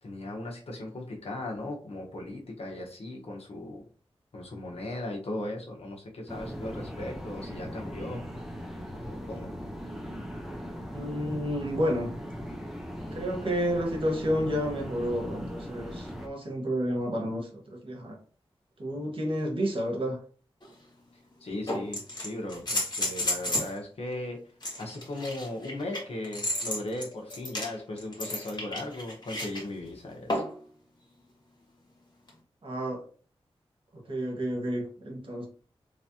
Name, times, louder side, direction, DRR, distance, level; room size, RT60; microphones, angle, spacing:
voice 1, 0.0-3.8 4.3-8.2 8.9-9.5 21.4-24.4 24.8-30.4, left 1 dB, 75° left, 0 dB, 1.1 m, -37 dB
sound 1, 6.3-16.3, equal, 5° right, 0.8 m, -39 dB
voice 2, 10.9-12.1 13.1-18.2 18.8-20.2 32.6-33.0 33.9-35.5, equal, 60° right, 0 dB, 1.4 m, -30 dB
sound 2, 20.6-20.7 21.7-23.8 24.6-29.6 30.3-30.6 32.3-32.4, left 1 dB, 45° left, 1.8 m, -32 dB
3.4 x 3.1 x 2.8 m, 0.41 s
wide cardioid pair, 65°, 10 cm